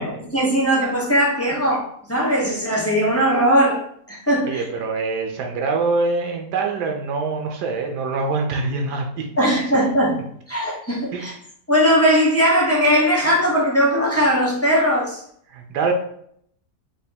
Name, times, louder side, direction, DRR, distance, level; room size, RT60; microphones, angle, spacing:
voice 1, 0.0-3.8 4.1-4.6 9.4-10.2 10.5-11.3 11.7-15.2, equal, 15° left, -5 dB, 0.5 m, -19 dB
voice 2, 4.4-9.3 11.1-11.3 15.5-15.9, right 4 dB, 80° right, 2 dB, 1.2 m, -24 dB
5.3 x 2.2 x 2.7 m, 0.66 s
omnidirectional pair, 1.7 m